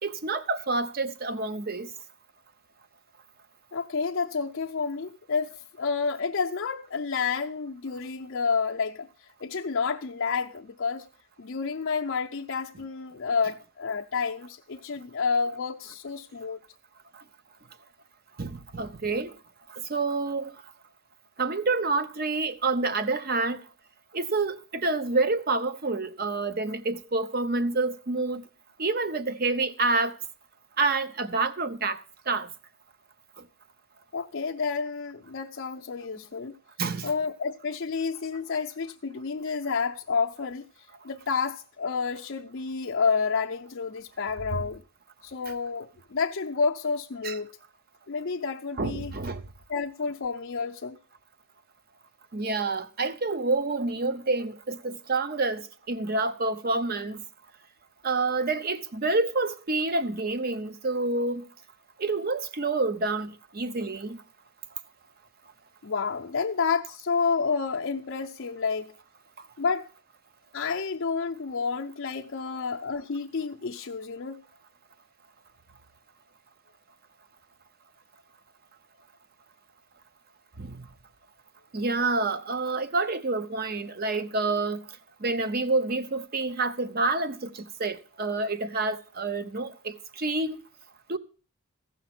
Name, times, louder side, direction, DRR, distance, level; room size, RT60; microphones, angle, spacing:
voice 1, 0.0-1.9 18.4-19.3 19.7-20.5 21.4-23.6 24.1-28.4 28.8-30.2 30.8-32.0 32.3-32.5 36.8-37.1 44.5-44.6 47.2-47.4 48.8-49.4 52.3-57.2 58.0-61.4 62.0-64.2 80.6-80.8 81.7-84.8 85.2-90.6 91.1-91.2, right 3 dB, 40° right, 0.7 m, -28 dB
voice 2, 3.7-9.1 9.4-11.1 11.4-16.6 34.1-36.6 37.0-40.6 41.0-44.8 45.2-47.5 48.1-49.1 49.7-51.0 65.8-68.9 69.6-69.9 70.5-74.4, left 5 dB, 55° left, 0.5 m, -29 dB
15.0 x 5.7 x 5.9 m
head